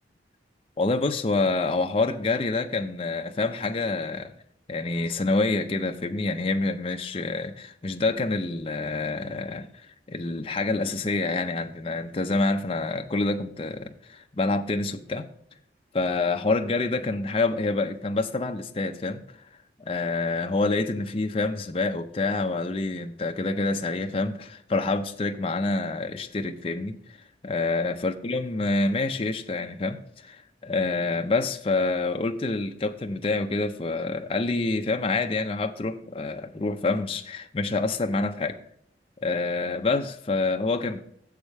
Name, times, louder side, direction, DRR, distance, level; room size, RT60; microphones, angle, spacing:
voice 1, 0.8-4.3 4.7-15.3 15.9-19.2 19.8-27.2 27.4-38.6 39.2-41.0, left 3 dB, 30° left, 0.5 m, -27 dB
7.1 x 4.8 x 6.6 m
head